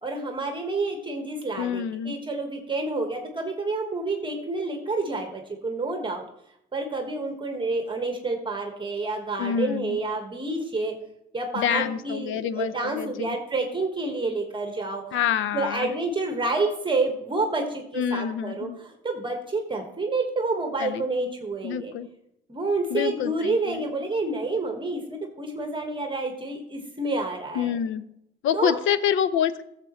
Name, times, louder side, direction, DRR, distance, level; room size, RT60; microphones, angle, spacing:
voice 1, 0.0-6.2 6.7-10.9 11.3-15.2 15.5-21.9 22.5-27.7 28.5-28.8, right 3 dB, 25° right, 3 dB, 1.5 m, -29 dB
voice 2, 1.6-2.1 9.4-10.0 11.5-13.4 15.1-15.9 17.9-18.8 20.8-21.0 21.6-22.1 22.9-23.8 27.5-28.0 28.4-29.6, left 9 dB, 80° left, 15 dB, 0.6 m, -27 dB
13.5 x 7.5 x 3.1 m, 0.77 s
cardioid pair, 90°, 20 cm